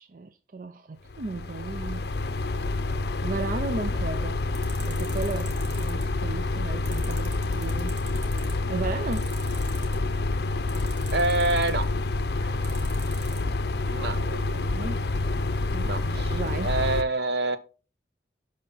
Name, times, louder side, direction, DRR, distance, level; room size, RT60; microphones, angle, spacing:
voice 1, 0.0-2.1 3.2-4.4 4.9-8.0 8.7-9.3 12.4-13.0 14.5-15.0 15.7-16.7, right 3 dB, 50° right, 0.5 m, -35 dB
sound 1, 1.1-17.0, left 2 dB, 60° left, 0.6 m, -28 dB
sound 2, 4.5-6.0 6.9-8.5 9.1-10.0 10.7-11.8 12.6-13.4, right 5 dB, 85° right, 2.4 m, -43 dB
voice 2, 11.1-11.9 13.9-14.9 15.8-17.6, right 2 dB, 70° right, 1.0 m, -27 dB
11.0 x 5.1 x 3.9 m
head